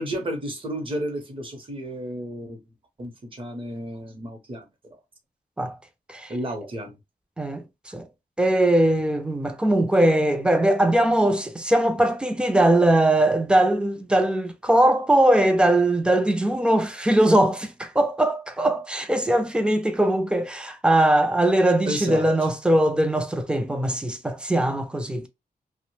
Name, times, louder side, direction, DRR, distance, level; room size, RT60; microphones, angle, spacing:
voice 1, 0.0-2.6 3.0-4.6 6.3-7.0 21.8-22.3, equal, 35° right, 0.7 m, -32 dB
voice 2, 7.4-8.1 8.4-25.3, right 1 dB, 5° right, 0.4 m, -21 dB
2.7 x 2.1 x 3.0 m
wide cardioid pair, 170°, 16 cm